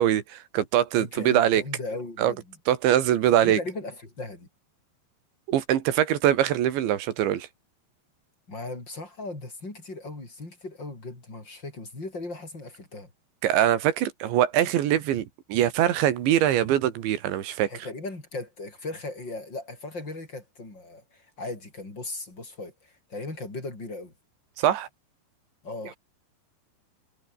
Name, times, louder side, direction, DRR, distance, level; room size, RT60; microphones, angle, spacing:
voice 1, 0.0-1.6 2.2-2.3 2.7-3.6 5.5-7.5 13.4-17.7 24.6-24.9, right 11 dB, 75° right, 4.2 m, -23 dB
voice 2, 1.0-2.6 3.4-4.5 8.5-13.1 17.7-24.1 25.6-26.0, left 2 dB, 25° left, 7.3 m, -37 dB
omnidirectional pair, 5.3 m